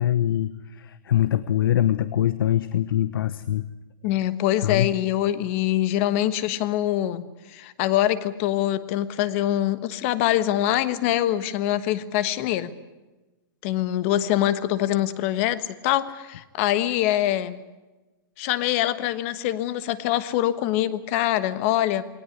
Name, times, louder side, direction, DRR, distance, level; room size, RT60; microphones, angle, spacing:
voice 1, 0.0-3.7 4.6-4.9, left 11 dB, 80° left, 15 dB, 1.0 m, -23 dB
voice 2, 4.0-12.7 13.6-17.6 18.4-22.0, left 13 dB, 35° left, 15 dB, 1.3 m, -24 dB
20.0 x 19.0 x 9.8 m, 1.1 s
supercardioid pair, 165°, 12 cm